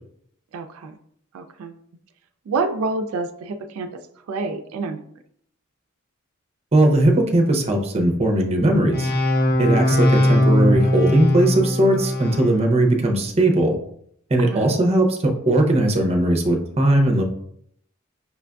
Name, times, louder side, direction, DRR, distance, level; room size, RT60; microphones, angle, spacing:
voice 1, 0.5-0.9 1.3-1.8 2.5-4.0 4.3-5.0 14.4-14.8, right 3 dB, 80° right, 7 dB, 0.3 m, -28 dB
voice 2, 6.7-9.1 9.6-13.7 14.3-17.2, right 1 dB, 30° right, 3 dB, 0.6 m, -19 dB
sound 1, 8.9-12.5, left 1 dB, 50° left, 0.7 m, -19 dB
5.7 x 2.4 x 2.2 m, 0.68 s
head